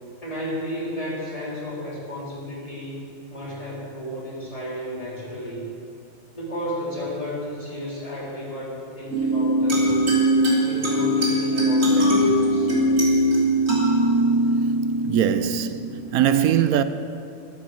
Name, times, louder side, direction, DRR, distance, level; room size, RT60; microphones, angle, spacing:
voice 1, 0.2-3.0 3.3-5.7 6.3-10.1 10.6-12.7, equal, 25° left, 3.9 m, -33 dB
sound 1, 9.1-16.1, right 1 dB, 65° right, 3.6 m, -21 dB
voice 2, 15.0-16.8, right 10 dB, 85° right, 1.1 m, -21 dB
13.0 x 12.5 x 6.4 m
omnidirectional pair, 1.5 m